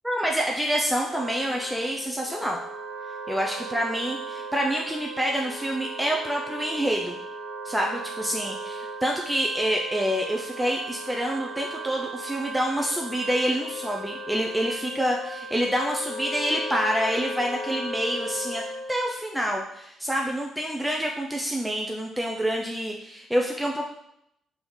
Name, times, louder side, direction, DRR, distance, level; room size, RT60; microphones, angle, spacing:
voice 1, 0.0-2.6 3.3-7.2 7.6-23.9, equal, 5° right, 0 dB, 0.4 m, -27 dB
Wind instrument woodwind instrument, 0.9-19.0, right 1 dB, 60° right, 0.7 m, -37 dB
3.8 x 3.4 x 3.1 m, 0.79 s
cardioid pair, 90°, 0 cm